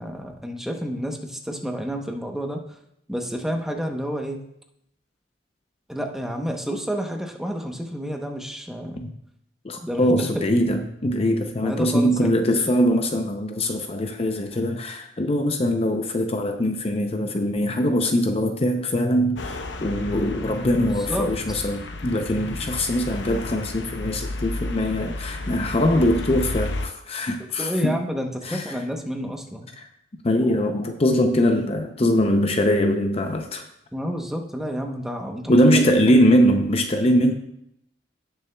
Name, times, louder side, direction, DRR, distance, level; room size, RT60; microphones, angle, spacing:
voice 1, 0.0-2.6 3.1-4.4 5.9-9.0 9.8-10.5 11.6-12.4 21.0-21.7 27.6-29.7 33.9-35.9, equal, ahead, 2 dB, 0.8 m, -30 dB
voice 2, 9.6-28.0 28.5-28.6 30.2-33.6 35.5-37.3, equal, 35° left, 5 dB, 0.6 m, -22 dB
sound 1, 19.4-26.9, left 2 dB, 75° left, 0.8 m, -32 dB
17.0 x 6.8 x 2.3 m, 0.77 s
head